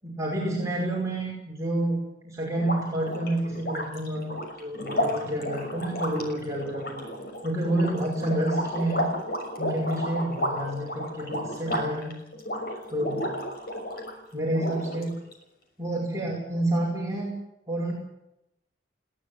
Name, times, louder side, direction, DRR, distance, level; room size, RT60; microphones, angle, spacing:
voice 1, 0.0-7.1 7.4-9.1 9.6-12.1 12.9-13.3 14.3-15.2 15.8-17.3 17.7-17.9, right 1 dB, 20° right, -3 dB, 5.6 m, -29 dB
sound 1, 2.5-14.1 14.5-15.3, equal, 60° left, 6.3 m, -32 dB
20.5 x 17.0 x 8.1 m, 0.86 s
head